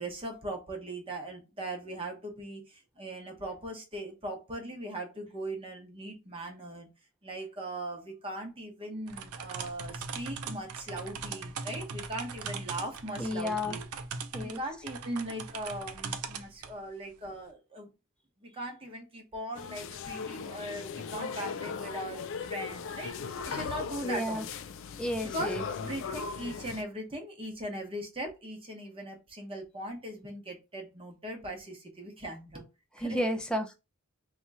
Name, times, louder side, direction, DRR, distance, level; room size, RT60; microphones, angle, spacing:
voice 1, 0.0-6.9 7.2-13.8 14.4-17.9 18.4-24.5 25.3-25.5 25.8-32.6 33.0-33.2, right 1 dB, 25° right, 0.9 m, -39 dB
sound 1, 9.1-16.8, right 5 dB, 80° right, 0.5 m, -40 dB
voice 2, 13.2-13.8 14.3-14.6 24.0-24.4 25.0-25.6 33.0-33.7, left 1 dB, 5° left, 0.5 m, -32 dB
sound 2, 19.5-26.8, left 5 dB, 60° left, 0.4 m, -38 dB
2.9 x 2.4 x 4.1 m
head